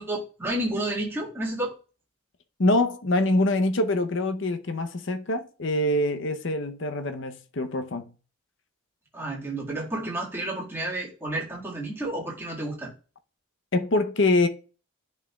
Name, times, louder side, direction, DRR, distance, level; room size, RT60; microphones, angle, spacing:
voice 1, 0.0-1.7 9.1-12.9, right 1 dB, 10° right, 1.8 m, -31 dB
voice 2, 2.6-8.0 13.7-14.5, left 2 dB, 60° left, 0.7 m, -24 dB
10.5 x 4.5 x 2.3 m
head